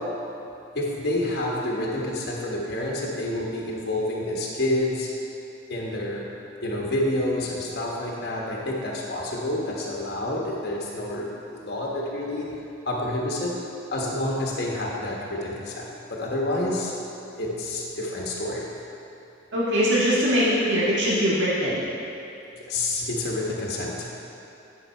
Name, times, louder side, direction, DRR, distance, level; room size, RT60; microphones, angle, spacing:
voice 1, 0.7-5.1 5.7-6.3 6.6-11.3 11.5-12.5 12.8-13.5 13.9-15.9 16.2-16.9 17.4-18.6 22.7-24.1, left 1 dB, 55° left, -3 dB, 1.2 m, -28 dB
voice 2, 19.5-21.8, equal, 65° right, -8 dB, 1.8 m, -22 dB
10.0 x 5.8 x 4.4 m, 2.9 s
head